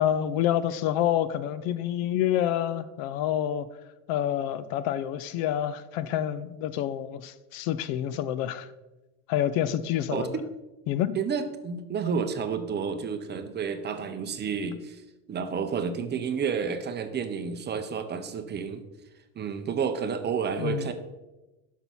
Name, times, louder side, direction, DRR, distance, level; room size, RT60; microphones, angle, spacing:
voice 1, 0.0-3.7 4.1-8.7 9.3-10.4 10.9-11.2 20.6-20.9, left 11 dB, 50° left, 0.5 m, -28 dB
voice 2, 11.1-15.0 15.3-18.8 19.4-20.9, right 6 dB, 25° right, 0.6 m, -30 dB
6.2 x 5.8 x 5.4 m
supercardioid pair, 115°, 44 cm